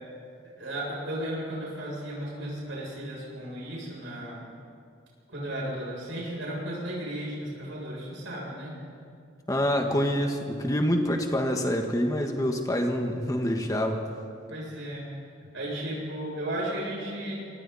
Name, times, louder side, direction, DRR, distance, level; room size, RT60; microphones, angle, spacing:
voice 1, 0.4-4.4 5.3-8.8 14.5-15.0 15.5-17.4, right 1 dB, 80° right, -5 dB, 7.8 m, -34 dB
voice 2, 9.5-14.0, equal, 20° left, 3 dB, 1.6 m, -26 dB
27.0 x 24.5 x 4.3 m, 2.3 s
head